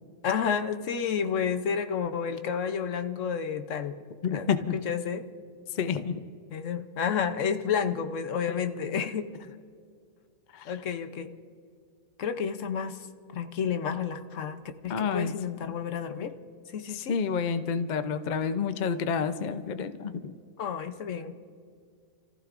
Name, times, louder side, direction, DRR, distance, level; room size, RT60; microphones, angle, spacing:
voice 1, 0.2-3.9 4.3-4.5 4.7-5.2 6.5-9.3 10.6-11.3 12.2-13.0 13.3-16.3 16.7-17.2 20.6-21.3, left 7 dB, 65° left, 8 dB, 1.1 m, -30 dB
voice 2, 4.2-4.7 5.8-6.1 8.5-8.6 8.8-9.0 10.5-10.7 14.9-15.3 16.9-20.3, left 6 dB, 50° left, 10 dB, 0.6 m, -29 dB
29.5 x 15.0 x 2.5 m, 2.2 s
omnidirectional pair, 1.5 m